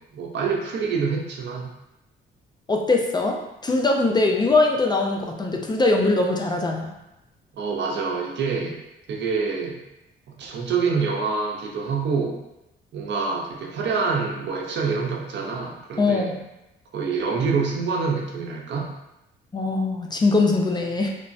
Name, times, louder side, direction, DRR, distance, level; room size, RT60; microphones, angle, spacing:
voice 1, 0.0-1.7 7.5-8.8 9.1-9.8 10.3-12.4 12.9-16.3 16.9-18.9, right 5 dB, 65° right, 0 dB, 0.6 m, -26 dB
voice 2, 2.7-6.9 16.0-16.4 19.5-21.1, left 3 dB, 20° left, 1 dB, 0.3 m, -21 dB
3.1 x 2.0 x 2.5 m, 0.90 s
cardioid pair, 90°, 20 cm